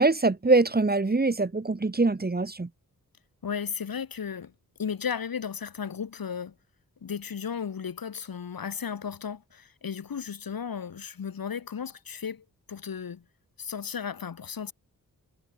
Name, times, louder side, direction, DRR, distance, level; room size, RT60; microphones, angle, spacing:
voice 1, 0.0-2.7, right 3 dB, 25° right, 3.5 m, -23 dB
voice 2, 3.4-4.5 4.8-6.5 7.0-13.2 13.6-14.7, left 7 dB, 75° left, 7.4 m, -35 dB
wide cardioid pair, 130°, 35 cm